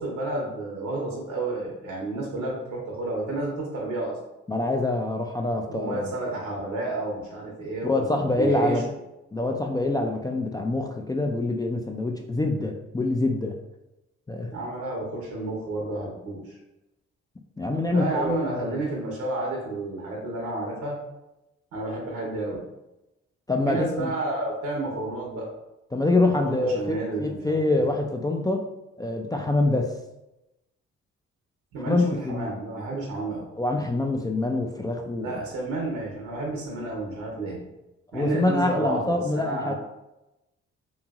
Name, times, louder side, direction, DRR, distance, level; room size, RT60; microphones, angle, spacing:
voice 1, 0.0-4.2 5.7-8.8 14.5-16.6 17.9-21.0 21.7-22.6 23.7-25.5 26.4-27.9 31.7-33.5 35.2-37.6 38.1-39.7, right 2 dB, 70° right, -1 dB, 0.9 m, -31 dB
voice 2, 4.5-6.1 7.8-8.9 9.3-13.5 14.3-14.5 17.6-18.7 23.5-24.1 25.9-28.7 29.0-29.9 31.9-32.5 33.6-35.4 38.1-39.7, left 2 dB, 15° left, 2 dB, 0.3 m, -25 dB
3.1 x 2.6 x 2.4 m, 0.94 s
hypercardioid pair, 45°, 31 cm